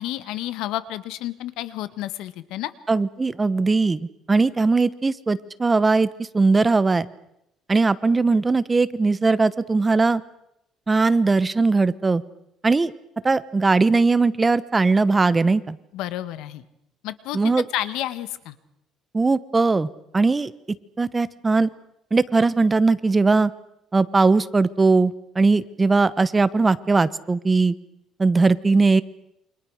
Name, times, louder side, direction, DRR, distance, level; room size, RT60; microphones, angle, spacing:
voice 1, 0.0-2.7 15.9-16.7 17.0-18.6, left 14 dB, 85° left, 14 dB, 1.8 m, -30 dB
voice 2, 2.9-6.1 6.3-7.1 7.7-10.2 10.9-12.2 12.6-12.9 13.2-15.8 17.3-17.6 19.1-19.9 20.1-20.5 21.0-21.7 22.1-23.5 23.9-27.7 28.2-29.0, right 3 dB, 15° right, 16 dB, 1.0 m, -19 dB
28.5 x 25.5 x 6.5 m, 0.80 s
cardioid pair, 145°, 0 cm